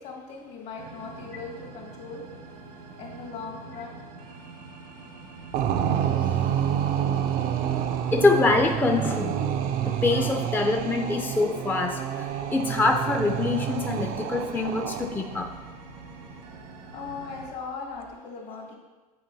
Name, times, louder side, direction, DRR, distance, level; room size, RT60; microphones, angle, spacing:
voice 1, 0.0-2.2 3.0-4.0 16.9-18.8, left 5 dB, 60° left, -1 dB, 1.9 m, -39 dB
sound 1, 0.8-17.5, right 4 dB, 90° right, 1.4 m, -45 dB
sound 2, 5.5-15.4, right 10 dB, 50° right, 0.5 m, -28 dB
voice 2, 8.1-9.4 9.8-15.5, left 3 dB, 10° left, 3 dB, 0.5 m, -25 dB
9.2 x 4.4 x 2.7 m, 1.3 s
hypercardioid pair, 80°, 20 cm